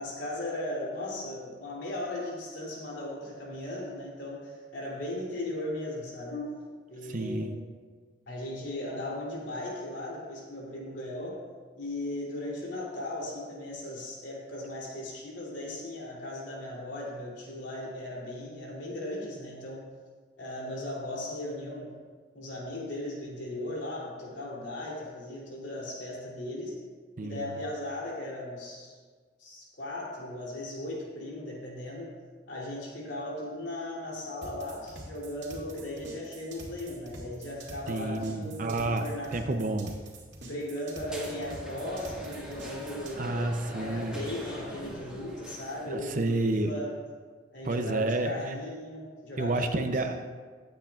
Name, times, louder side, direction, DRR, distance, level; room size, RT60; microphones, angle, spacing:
voice 1, 0.0-6.6 6.9-7.6 8.3-11.4 11.8-19.8 20.4-22.0 22.3-26.8 27.2-29.0 29.4-32.1 32.5-39.4 40.4-46.9 47.5-50.0, left 1 dB, 85° left, -4 dB, 3.1 m, -37 dB
voice 2, 7.0-7.5 27.2-27.5 37.9-39.9 43.2-44.2 45.9-46.7 47.6-48.5 49.4-50.4, right 2 dB, 45° right, 6 dB, 0.6 m, -30 dB
sound 1, 34.4-43.1, right 1 dB, 90° right, 2.1 m, -46 dB
sound 2, 41.1-46.0, equal, 5° right, 1.8 m, -43 dB
18.5 x 8.5 x 2.4 m, 1.5 s
head